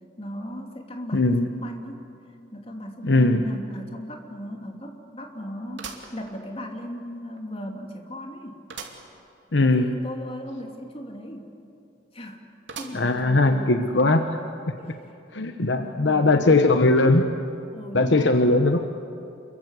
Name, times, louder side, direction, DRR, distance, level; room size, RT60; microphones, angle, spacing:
voice 1, 0.2-2.1 2.5-8.6 9.8-11.5 12.1-12.4 12.8-14.2 14.8-15.1 15.7-16.8 17.7-18.5, equal, 30° left, 3 dB, 2.8 m, -37 dB
voice 2, 1.1-1.5 3.0-3.5 9.5-10.0 12.9-14.3 15.3-17.2 17.9-18.9, left 2 dB, 65° left, 7 dB, 1.1 m, -19 dB
sound 1, 3.5-3.6 4.1-4.2 5.8-6.9 7.4-7.5 8.7-9.1 9.5-9.6 9.8-9.9 12.7-13.3 13.9-14.0 15.0-15.1, right 5 dB, 65° right, 2.8 m, -40 dB
28.0 x 23.0 x 8.3 m, 2.7 s
head